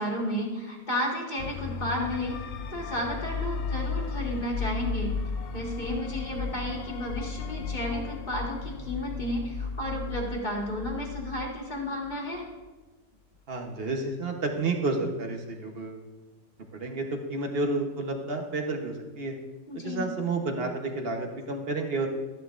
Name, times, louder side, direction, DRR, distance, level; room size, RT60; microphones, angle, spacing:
voice 1, 0.0-2.3 2.7-5.1 5.5-12.5 19.7-20.1, equal, 25° left, -1 dB, 1.8 m, -32 dB
sound 1, 1.4-12.4, left 5 dB, 65° left, 0.9 m, -35 dB
voice 2, 13.5-16.0 16.7-19.4 19.8-22.1, right 3 dB, 40° right, 4 dB, 1.1 m, -30 dB
13.0 x 10.5 x 2.5 m, 1.2 s
omnidirectional pair, 1.8 m